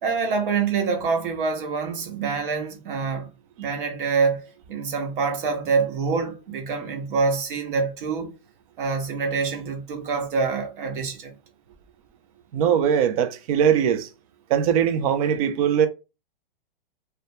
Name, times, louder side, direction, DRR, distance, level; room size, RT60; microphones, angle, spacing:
voice 1, 0.0-3.3 3.6-8.3 8.8-11.3, right 5 dB, 60° right, 1.0 m, -26 dB
voice 2, 12.5-14.1 14.5-15.9, right 8 dB, 40° right, 0.4 m, -21 dB
2.2 x 2.2 x 2.7 m
hypercardioid pair, 135°, 29 cm